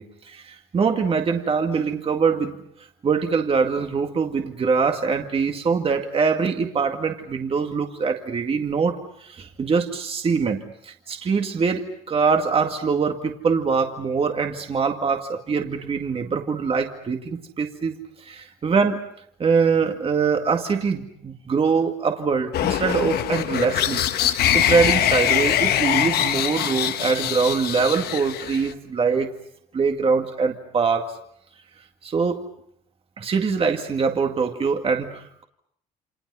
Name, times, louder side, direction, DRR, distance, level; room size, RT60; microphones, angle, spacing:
voice 1, 0.0-2.6 3.0-17.9 18.2-19.0 19.4-29.3 29.7-31.1 32.0-32.4 33.2-35.4, right 5 dB, 35° right, 4 dB, 2.1 m, -23 dB
sound 1, 22.5-28.7, left 10 dB, 70° left, 1.3 m, -23 dB
29.5 x 26.5 x 5.6 m, 0.69 s
cardioid pair, 110°, 17 cm